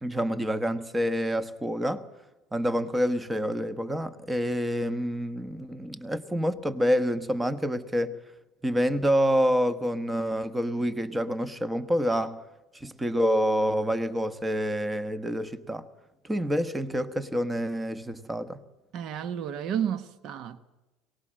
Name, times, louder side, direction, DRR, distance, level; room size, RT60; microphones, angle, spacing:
voice 1, 0.0-2.0 2.5-8.2 8.6-12.4 12.7-15.9 16.2-18.6, equal, 10° right, 1.3 m, -27 dB
voice 2, 18.9-20.6, right 9 dB, 55° right, 1.2 m, -31 dB
23.0 x 19.0 x 7.6 m
supercardioid pair, 85°, 0 cm